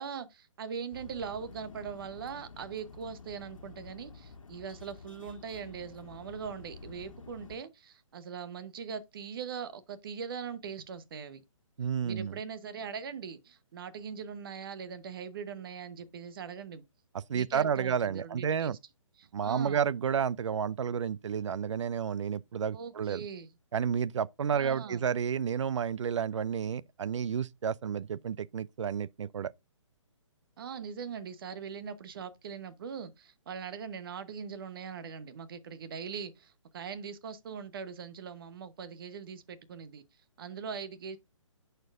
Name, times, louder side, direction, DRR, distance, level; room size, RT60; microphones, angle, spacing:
voice 1, 0.0-11.4 12.0-16.8 17.3-18.8 19.2-19.8 22.7-23.5 24.5-25.0 30.6-40.0 40.4-41.2, right 6 dB, 45° right, 0.9 m, -41 dB
sound 1, 0.9-7.6, left 4 dB, 80° left, 1.4 m, -50 dB
voice 2, 11.8-12.4 17.3-18.8 19.3-23.2 23.7-29.5, right 7 dB, 65° right, 0.4 m, -31 dB
11.0 x 4.4 x 2.4 m
figure-of-eight pair, 145°, 17 cm